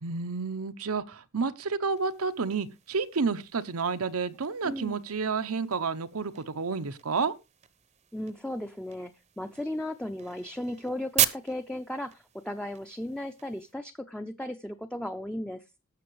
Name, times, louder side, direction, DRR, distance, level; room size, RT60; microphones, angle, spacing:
voice 1, 0.0-7.3, right 4 dB, 90° right, 0.8 m, -30 dB
sound 1, 1.9-13.7, right 10 dB, 30° right, 0.7 m, -38 dB
voice 2, 4.6-5.0 8.1-9.1 9.4-15.6, left 1 dB, 5° left, 0.5 m, -35 dB
18.0 x 6.8 x 3.1 m
head